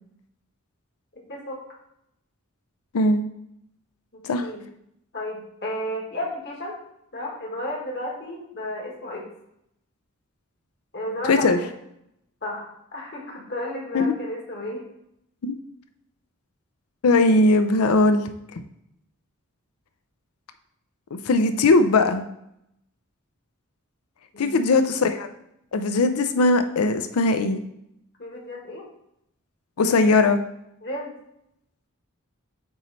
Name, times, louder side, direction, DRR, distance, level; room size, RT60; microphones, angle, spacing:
voice 1, 1.1-1.6 4.1-4.6 5.1-6.7 7.1-9.3 10.9-11.7 12.4-14.8 24.3-24.7 28.2-28.9 30.8-31.1, left 1 dB, 50° left, -1 dB, 1.6 m, -33 dB
voice 2, 11.3-11.6 13.9-14.1 15.4-15.5 17.0-18.2 18.5-18.6 21.1-22.3 24.4-25.3 25.7-27.6 29.8-30.4, left 2 dB, 90° left, 9 dB, 0.5 m, -19 dB
8.1 x 3.2 x 4.0 m, 0.79 s
head